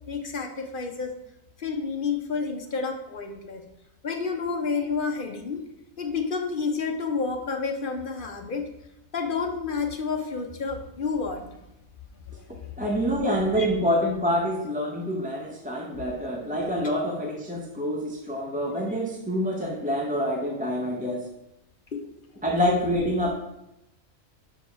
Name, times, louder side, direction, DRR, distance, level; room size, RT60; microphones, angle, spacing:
voice 1, 0.1-1.1 1.6-3.6 4.0-5.6 6.0-8.7 9.1-11.6 12.6-12.7 13.6-13.7 21.9-22.0, left 5 dB, 45° left, 4 dB, 0.8 m, -30 dB
voice 2, 12.8-21.3 22.4-23.3, equal, 10° right, -1 dB, 0.7 m, -26 dB
5.8 x 5.1 x 5.6 m, 0.85 s
omnidirectional pair, 1.4 m